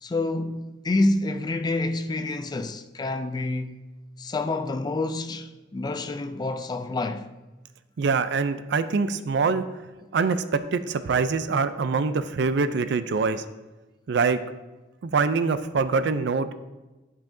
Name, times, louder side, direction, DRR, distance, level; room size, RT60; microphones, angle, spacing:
voice 1, 0.0-3.8 4.2-7.3, left 2 dB, 20° left, 0.3 m, -28 dB
voice 2, 8.0-9.6 10.1-13.4 14.1-14.4 15.0-16.5, right 4 dB, 65° right, 0.4 m, -24 dB
11.5 x 5.5 x 2.6 m
head